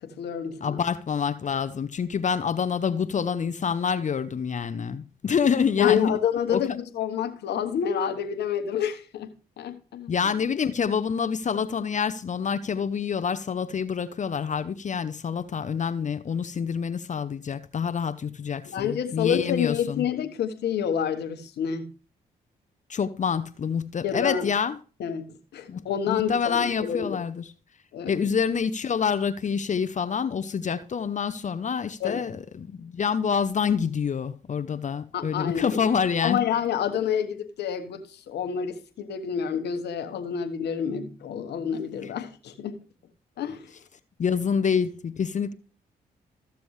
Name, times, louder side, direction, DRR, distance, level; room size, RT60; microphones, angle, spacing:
voice 1, 0.0-0.8 5.8-9.3 9.6-10.3 18.6-21.9 24.0-24.5 25.0-27.2 27.9-28.1 32.0-32.3 35.1-35.8 36.2-42.8 43.4-43.7, left 8 dB, 75° left, 1.2 m, -28 dB
voice 2, 0.6-6.2 6.5-6.8 10.1-20.1 22.9-24.8 25.7-25.8 26.1-27.5 28.1-36.4 44.2-45.5, left 6 dB, 45° left, 0.7 m, -27 dB
14.0 x 6.9 x 3.2 m
supercardioid pair, 55°, 17 cm